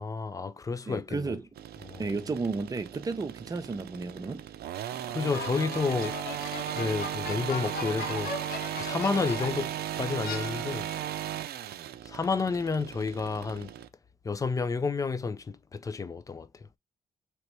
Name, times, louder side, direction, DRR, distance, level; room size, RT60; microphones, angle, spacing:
voice 1, 0.0-1.4 1.8-2.1 5.1-6.2 6.8-8.5 8.8-10.9 12.0-13.7 14.2-16.6, left 4 dB, 20° left, 0.3 m, -31 dB
voice 2, 0.9-1.4 2.0-4.5, right 3 dB, 25° right, 0.6 m, -33 dB
sound 1, 1.6-13.9, right 11 dB, 85° right, 0.4 m, -36 dB
sound 2, 5.3-9.7 10.2-11.0, left 4 dB, 80° left, 0.9 m, -39 dB
3.0 x 3.0 x 3.1 m
cardioid pair, 120°, 16 cm